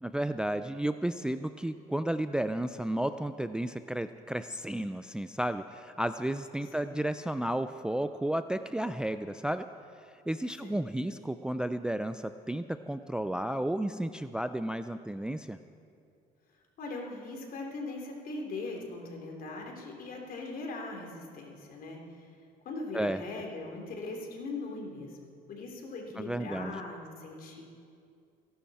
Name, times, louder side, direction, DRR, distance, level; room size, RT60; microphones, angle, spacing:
voice 1, 0.0-9.7 10.3-15.6 22.9-23.2 26.2-26.8, right 1 dB, 5° right, 10 dB, 0.4 m, -32 dB
voice 2, 16.8-22.3 22.6-27.6, left 3 dB, 60° left, 0 dB, 3.3 m, -40 dB
28.5 x 11.5 x 4.3 m, 2.4 s
cardioid pair, 110°, 17 cm